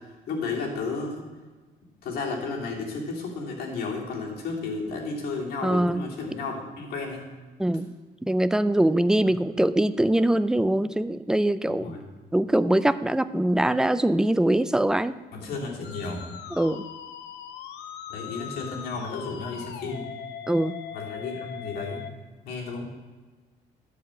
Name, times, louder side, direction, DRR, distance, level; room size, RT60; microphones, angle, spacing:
voice 1, 0.3-1.2 2.0-7.2 9.3-9.4 11.7-12.0 15.3-16.3 18.1-20.1 20.9-22.1 22.4-22.8, left 4 dB, 65° left, -3 dB, 3.1 m, -33 dB
voice 2, 5.6-6.0 7.6-7.9 8.2-12.0 12.3-15.2 16.5-16.8 20.5-20.8, right 1 dB, 5° right, 13 dB, 0.4 m, -23 dB
Musical instrument, 15.8-22.1, left 8 dB, 85° left, 0.9 m, -40 dB
12.0 x 5.5 x 7.7 m, 1.3 s
cardioid pair, 110°, 17 cm